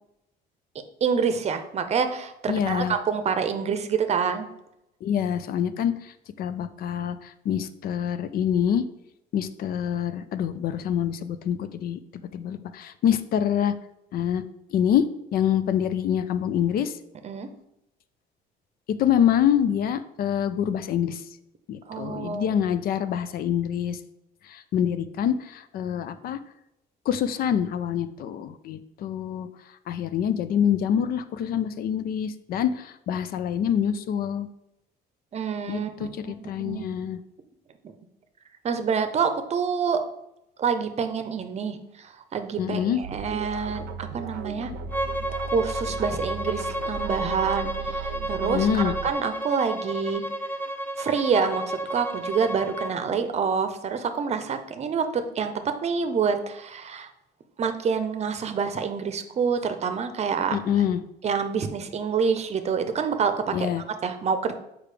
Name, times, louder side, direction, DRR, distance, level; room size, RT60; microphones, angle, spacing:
voice 1, 1.0-4.5 17.2-17.5 21.9-22.6 35.3-35.9 36.2-36.3 36.6-36.9 37.8-37.9 38.6-40.0 40.6-44.7 45.5-50.2 51.0-57.1 57.6-60.6 61.2-64.6, right 6 dB, 40° right, 9 dB, 0.7 m, -27 dB
voice 2, 2.5-2.9 5.0-6.1 6.4-8.8 9.3-12.0 12.3-13.7 14.1-14.4 14.7-15.1 15.3-16.9 19.0-21.2 21.7-24.0 24.5-26.4 27.1-29.5 29.9-34.5 35.7-37.2 42.6-43.0 48.4-48.9 60.5-61.0 63.5-63.8, left 9 dB, 60° left, 12 dB, 0.5 m, -26 dB
sound 1, 43.0-49.1, right 5 dB, 85° right, 0.6 m, -35 dB
Bowed string instrument, 44.9-52.9, right 1 dB, 10° left, 0.6 m, -32 dB
6.6 x 4.9 x 3.3 m, 0.84 s
cardioid pair, 110°, 17 cm